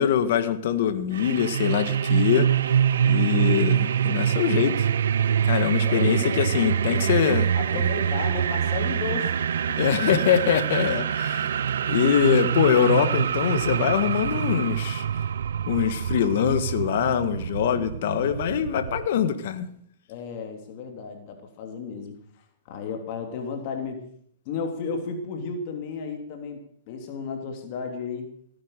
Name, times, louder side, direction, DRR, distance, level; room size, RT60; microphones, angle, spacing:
voice 1, 0.0-2.5 3.0-4.9 5.4-7.5 7.7-7.8 9.8-11.5 11.9-15.0 15.7-19.7, left 9 dB, 65° left, 10 dB, 1.7 m, -23 dB
sound 1, 1.1-19.1, right 8 dB, 85° right, 0.6 m, -25 dB
voice 2, 5.8-7.2 7.5-9.3 9.7-9.8 20.1-22.2 22.7-24.0 24.4-26.6 26.9-28.3, left 5 dB, 50° left, 3 dB, 3.1 m, -34 dB
17.5 x 10.0 x 6.7 m, 0.63 s
hypercardioid pair, 135°, 0 cm